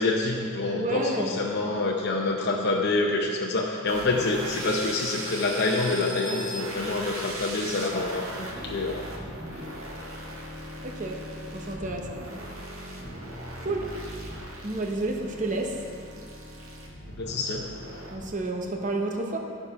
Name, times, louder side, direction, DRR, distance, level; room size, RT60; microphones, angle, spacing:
voice 1, 0.0-9.1 17.2-17.7, left 2 dB, 55° left, -1 dB, 0.7 m, -27 dB
voice 2, 0.7-1.4 10.8-11.3 11.5-12.3 13.6-13.9 14.6-15.8 18.1-19.4, right 2 dB, 40° right, 2 dB, 1.0 m, -30 dB
sound 1, 3.9-18.3, right 1 dB, 85° right, 1.6 m, -38 dB
12.0 x 4.9 x 5.8 m, 2.3 s
head